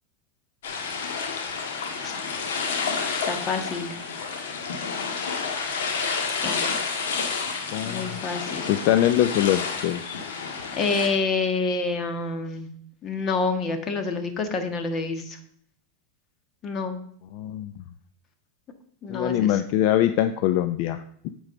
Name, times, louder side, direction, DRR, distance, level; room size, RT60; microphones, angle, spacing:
sound 1, 0.6-11.1, left 5 dB, 85° left, 1.8 m, -30 dB
voice 1, 3.3-3.9 6.2-6.6 7.8-8.7 10.8-12.7 13.0-15.4 16.6-17.0 19.0-19.5, left 4 dB, 30° left, 7 dB, 1.5 m, -27 dB
voice 2, 7.7-8.2 8.7-10.2 17.3-17.8 19.1-21.3, left 12 dB, 55° left, 10 dB, 0.5 m, -23 dB
9.1 x 4.7 x 6.8 m, 0.65 s
supercardioid pair, 130°, 0 cm